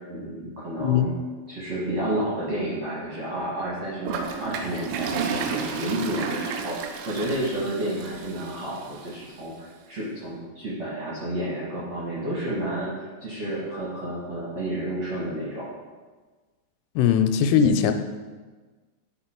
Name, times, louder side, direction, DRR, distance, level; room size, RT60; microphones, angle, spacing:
voice 1, 0.1-1.1 1.5-6.8 7.0-12.9 13.2-15.7, right 1 dB, 65° right, -7 dB, 1.6 m, -30 dB
Toilet flush, 4.1-9.1, right 6 dB, 80° right, 2.9 m, -32 dB
voice 2, 17.0-17.9, left 8 dB, 85° left, 8 dB, 3.1 m, -20 dB
11.0 x 4.0 x 4.4 m, 1.3 s
omnidirectional pair, 5.7 m